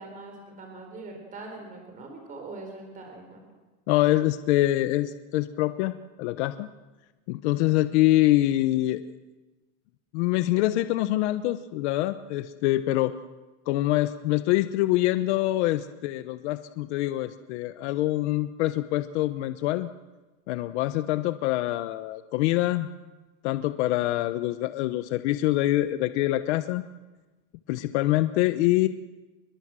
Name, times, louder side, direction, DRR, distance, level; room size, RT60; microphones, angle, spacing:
voice 1, 0.0-3.5, right 3 dB, 20° right, 3 dB, 4.2 m, -42 dB
voice 2, 3.9-6.7 7.3-9.0 10.1-13.1 13.7-19.9 20.5-22.9 23.4-26.8 27.7-28.9, left 16 dB, 60° left, 11 dB, 1.0 m, -25 dB
28.5 x 22.0 x 7.6 m, 1.2 s
supercardioid pair, 170°, 39 cm